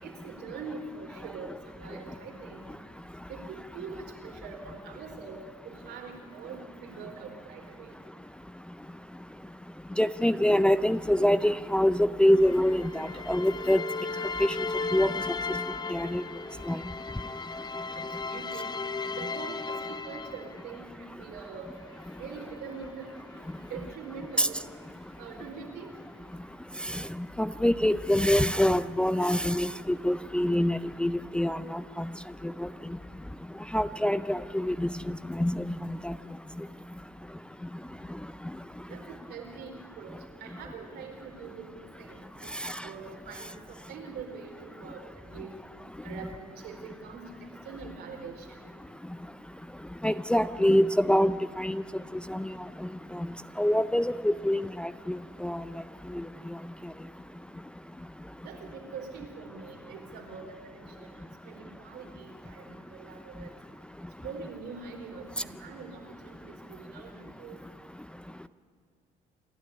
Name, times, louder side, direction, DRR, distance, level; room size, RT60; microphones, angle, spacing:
voice 1, 0.0-2.6 3.3-7.9 17.9-18.7 19.1-21.7 22.2-23.1 23.6-24.6 25.2-25.9 29.2-29.4 38.9-45.6 46.0-47.4 47.6-48.6 58.4-63.5 64.2-66.4 66.7-67.6, right 5 dB, 75° right, 2 dB, 4.4 m, -43 dB
voice 2, 10.0-13.8 14.4-14.5 14.9-15.1 15.9-16.2 16.7-16.8 24.4-24.5 26.9-27.0 27.4-32.0 32.6-32.7 33.7-34.9 35.3-35.7 36.0-36.1 42.6-42.7 50.0-51.8 52.3-52.5 53.1-53.3 53.6-55.6, left 1 dB, 5° left, 12 dB, 0.5 m, -25 dB
sound 1, 12.3-20.8 21.6-24.9, left 4 dB, 25° left, 0.9 m, -37 dB
28.0 x 11.5 x 9.8 m, 2.2 s
cardioid pair, 110°, 17 cm